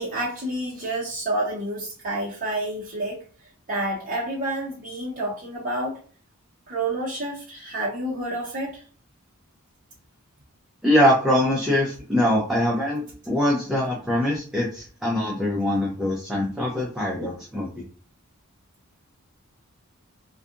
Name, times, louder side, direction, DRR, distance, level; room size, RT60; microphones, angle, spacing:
voice 1, 0.0-3.2 3.7-6.0 6.7-8.8, right 1 dB, 40° right, -6 dB, 0.7 m, -29 dB
voice 2, 10.8-17.8, left 1 dB, 5° right, -4 dB, 0.5 m, -23 dB
2.7 x 2.3 x 2.5 m, 0.40 s
head